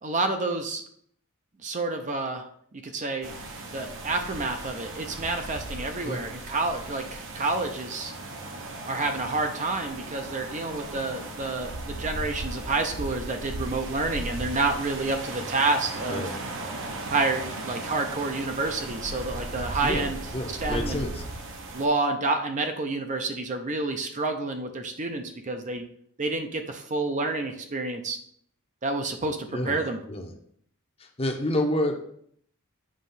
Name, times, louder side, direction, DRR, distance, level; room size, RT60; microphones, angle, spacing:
voice 1, 0.0-0.8 1.6-2.5 2.8-3.3 3.7-8.1 8.9-16.2 17.1-20.2 20.6-21.1 21.7-25.8 26.2-28.2 28.8-29.4 29.6-30.0, right 3 dB, 35° right, 5 dB, 0.6 m, -29 dB
sound 1, 3.2-21.9, right 2 dB, 60° right, 1.0 m, -37 dB
voice 2, 16.1-16.4 19.8-20.1 20.3-21.2 29.5-29.8 30.1-30.3 31.2-32.0, left 1 dB, 25° left, 3 dB, 0.8 m, -28 dB
7.4 x 3.1 x 5.6 m, 0.64 s
head